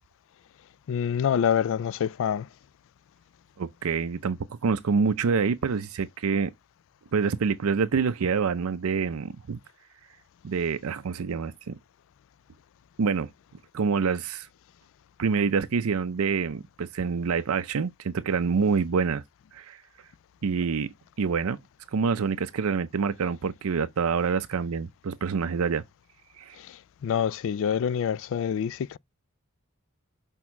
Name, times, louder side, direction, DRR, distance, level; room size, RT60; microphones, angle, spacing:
voice 1, 0.9-2.5 27.0-29.0, left 8 dB, 65° left, 0.3 m, -26 dB
voice 2, 3.6-6.5 7.1-9.6 10.4-11.8 13.0-13.3 13.7-14.5 15.2-19.2 19.5-19.8 20.4-20.9 21.2-21.6 21.9-25.8 26.4-26.6, right 5 dB, 80° right, 0.5 m, -26 dB
6.2 x 3.6 x 5.8 m
head